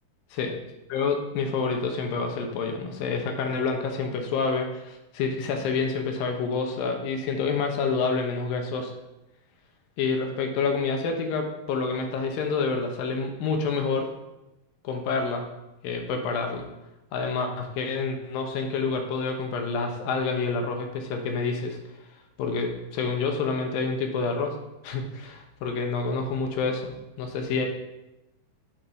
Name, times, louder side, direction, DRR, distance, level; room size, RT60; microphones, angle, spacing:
voice 1, 0.9-8.9 10.0-14.1 14.8-15.5 15.8-16.7 17.1-21.8 22.4-24.6 24.8-26.9 27.2-27.7, left 4 dB, 80° left, 3 dB, 2.8 m, -28 dB
7.2 x 6.6 x 5.7 m, 0.96 s
omnidirectional pair, 4.2 m